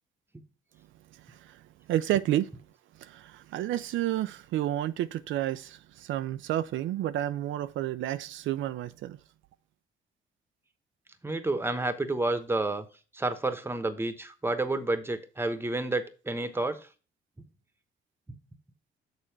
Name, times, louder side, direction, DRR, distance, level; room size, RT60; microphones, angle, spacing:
voice 1, 1.1-1.6 1.9-2.5 3.0-9.2, right 13 dB, 75° right, 0.4 m, -30 dB
voice 2, 11.2-12.9 13.1-16.9, right 2 dB, 10° right, 1.0 m, -30 dB
6.8 x 4.3 x 5.8 m
cardioid pair, 90°, 20 cm